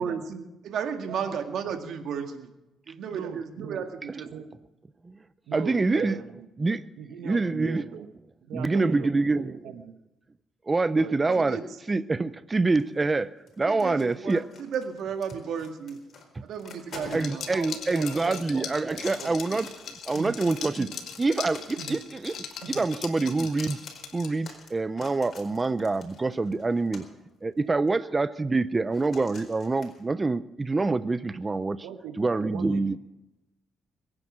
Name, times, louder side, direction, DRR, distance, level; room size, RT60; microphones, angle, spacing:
voice 1, 0.0-2.5 2.9-4.3 11.3-11.6 13.7-16.0 16.4-17.5, right 7 dB, 70° right, 5 dB, 2.0 m, -33 dB
voice 2, 3.1-3.8 4.3-4.4 5.5-6.5 7.0-8.1 8.4-9.9 11.0-11.4 16.9-17.2 17.5-19.3 20.1-20.3 20.8-20.9 21.8-22.0 22.6-22.9 31.8-32.8, right 8 dB, 90° right, 8 dB, 1.2 m, -40 dB
voice 3, 5.5-6.2 6.6-6.8 7.2-7.8 8.5-9.6 10.7-11.6 11.9-13.3 13.6-14.4 16.3-16.4 17.1-23.8 24.1-27.0 27.4-31.9 32.2-33.0, right 3 dB, 25° right, 15 dB, 0.6 m, -26 dB
sound 1, 12.8-13.2 13.5-16.2 16.5-18.4 18.8-20.7 21.0-27.2 27.9-28.0 28.9-30.0, left 4 dB, 55° left, 4.4 m, -47 dB
Liquid, 17.1-24.5, left 7 dB, 75° left, 2.2 m, -40 dB
22.0 x 9.8 x 6.2 m, 0.96 s
cardioid pair, 90°, 0 cm